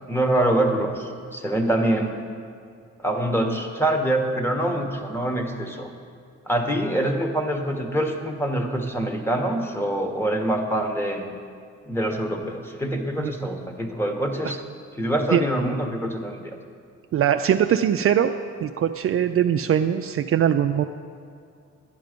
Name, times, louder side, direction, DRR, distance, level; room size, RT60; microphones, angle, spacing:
voice 1, 0.1-2.2 3.0-5.9 6.5-11.3 11.9-14.6 14.9-16.6, right 1 dB, 10° left, 4 dB, 1.4 m, -25 dB
voice 2, 17.1-18.3 18.6-20.9, right 9 dB, 50° right, 7 dB, 0.4 m, -21 dB
10.5 x 10.5 x 5.2 m, 2.3 s
cardioid pair, 90°, 30 cm